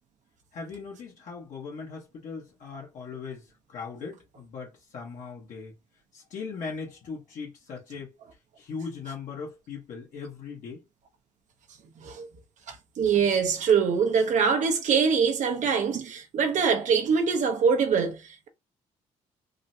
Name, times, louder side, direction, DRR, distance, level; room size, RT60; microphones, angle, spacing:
voice 1, 0.5-5.7 6.1-8.1 8.6-10.8, left 5 dB, 65° left, 1.2 m, -39 dB
voice 2, 12.0-12.3 12.7-18.5, right 6 dB, 60° right, 0.8 m, -24 dB
3.7 x 2.1 x 2.7 m
supercardioid pair, 75°, 14 cm